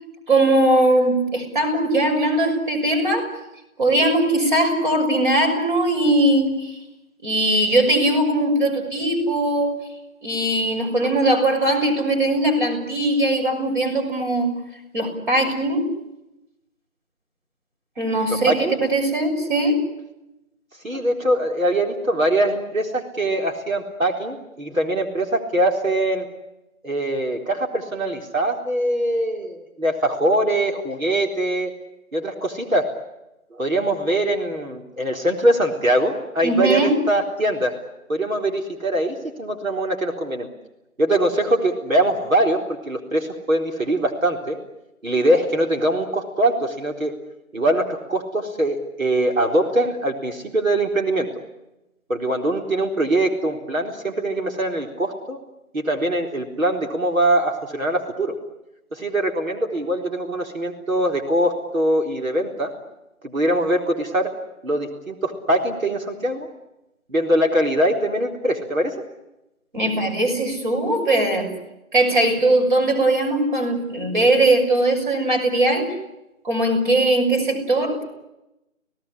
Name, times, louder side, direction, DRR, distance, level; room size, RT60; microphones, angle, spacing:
voice 1, 0.3-3.3 3.8-6.7 7.2-9.8 10.2-14.5 14.9-15.9 18.0-19.8 36.4-36.9 69.7-71.5 71.9-75.9 76.4-78.0, right 1 dB, 35° right, 3 dB, 6.3 m, -20 dB
voice 2, 18.4-18.7 20.8-26.3 26.8-31.7 32.1-32.9 33.5-37.7 38.1-40.5 41.0-44.6 45.0-47.1 47.5-51.3 52.1-55.4 55.7-58.3 58.9-62.7 63.2-64.3 64.6-66.5 67.1-68.9, right 1 dB, 70° right, 2 dB, 4.2 m, -22 dB
29.5 x 18.0 x 9.9 m, 0.93 s
figure-of-eight pair, 175°, 42 cm